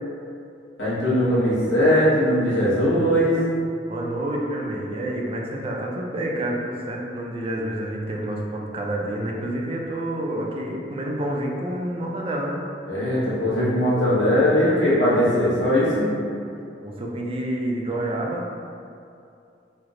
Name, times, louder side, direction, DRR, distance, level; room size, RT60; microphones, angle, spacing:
voice 1, 0.8-3.4 12.9-16.1, equal, 85° left, -8 dB, 1.0 m, -20 dB
voice 2, 1.6-2.0 3.9-12.6 16.8-18.4, right 1 dB, 30° right, -1 dB, 0.3 m, -28 dB
3.2 x 2.0 x 3.6 m, 2.5 s
head